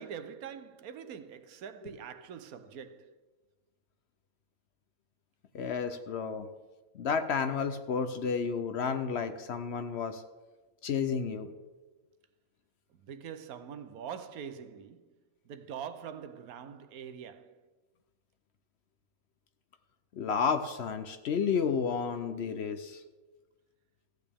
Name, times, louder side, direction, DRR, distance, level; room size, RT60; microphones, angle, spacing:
voice 1, 0.0-3.1 13.0-15.1 15.5-17.6, right 7 dB, 90° right, 1.2 m, -44 dB
voice 2, 5.5-6.5 6.9-10.2 10.8-11.5 20.2-23.0, left 6 dB, 60° left, 0.8 m, -31 dB
14.5 x 8.8 x 3.5 m
omnidirectional pair, 1.5 m